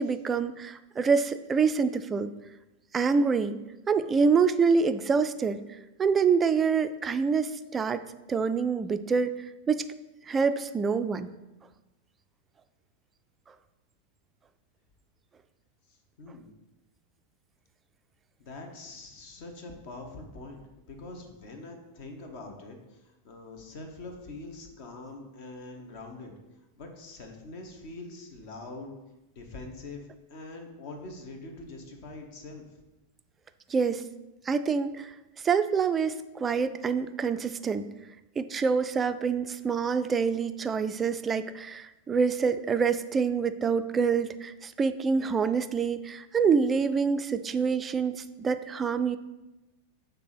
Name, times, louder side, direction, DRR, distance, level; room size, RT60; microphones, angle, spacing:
voice 1, 0.0-2.3 2.9-3.6 3.9-5.6 6.0-9.3 9.7-9.8 10.3-11.3 33.7-34.0 34.5-35.1 35.4-37.9 38.4-49.2, right 5 dB, 20° right, 11 dB, 0.3 m, -26 dB
voice 2, 16.2-16.5 18.4-26.3 26.8-28.9 29.3-32.6, left 2 dB, 45° left, 3 dB, 1.0 m, -44 dB
5.9 x 3.4 x 5.8 m, 1.0 s
figure-of-eight pair, 90°, 0 cm